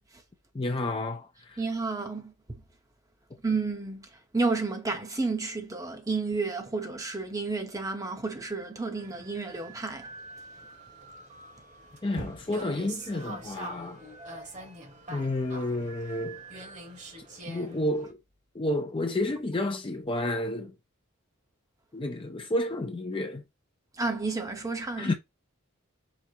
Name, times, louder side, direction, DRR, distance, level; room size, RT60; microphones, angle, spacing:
voice 1, 0.5-1.6 12.0-14.0 15.1-16.4 17.2-18.2 18.5-20.7 21.9-23.4 25.0-25.1, left 1 dB, 25° left, 0.5 m, -30 dB
voice 2, 1.6-2.3 3.4-4.1 4.3-10.1 24.0-25.1, right 3 dB, 15° right, 0.8 m, -31 dB
sound 1, 8.9-18.1, right 2 dB, 35° right, 1.2 m, -44 dB
5.0 x 2.1 x 4.4 m
head